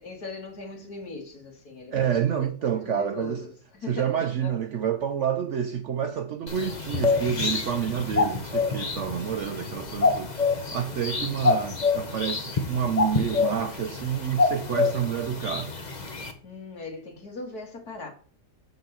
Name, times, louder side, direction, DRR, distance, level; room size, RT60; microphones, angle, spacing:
voice 1, 0.0-4.6 16.4-18.1, left 3 dB, 55° left, 2.6 m, -39 dB
voice 2, 1.9-3.4 3.9-15.7, right 8 dB, 75° right, 0.6 m, -28 dB
sound 1, 6.5-16.3, left 4 dB, 30° left, 1.0 m, -27 dB
6.7 x 5.8 x 6.8 m
omnidirectional pair, 1.9 m